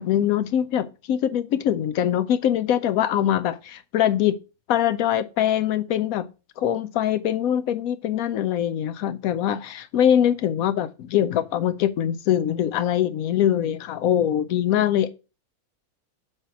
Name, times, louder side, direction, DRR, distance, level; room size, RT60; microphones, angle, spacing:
voice 1, 0.0-4.4 4.7-6.3 6.6-15.1, left 10 dB, 75° left, 1.0 m, -23 dB
8.0 x 3.0 x 5.7 m
omnidirectional pair, 1.6 m